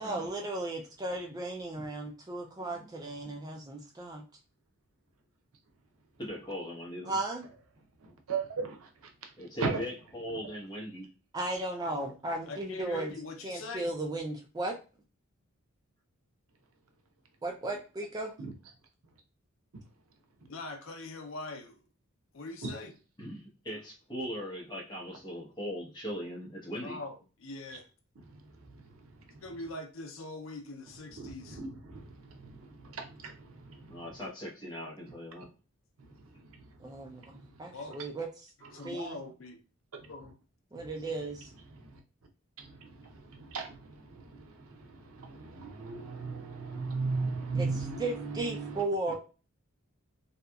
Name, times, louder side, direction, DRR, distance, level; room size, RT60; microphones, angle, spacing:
voice 1, 0.0-4.2 7.1-7.4 11.3-13.1 13.4-14.8 17.4-18.3 36.8-38.3 38.8-39.2 40.7-41.5 47.6-47.7 48.0-49.2, right 2 dB, 20° right, 0.3 m, -35 dB
voice 2, 6.2-7.2 9.4-11.1 23.2-27.0 33.9-35.5, equal, 20° left, 0.8 m, -39 dB
voice 3, 8.0-9.3 9.6-9.8 18.4-18.5 19.7-19.8 22.6-22.7 28.2-29.4 31.2-34.1 36.0-37.8 38.6-38.7 39.9-40.1 40.7-40.9 41.7-42.0 42.6-49.2, right 4 dB, 90° right, 0.6 m, -38 dB
voice 4, 12.5-13.9 20.5-21.8 22.3-22.9 26.8-27.9 29.4-31.6 37.7-38.0 38.7-39.6 40.1-40.3, left 2 dB, 70° left, 0.5 m, -42 dB
2.8 x 2.3 x 2.2 m
head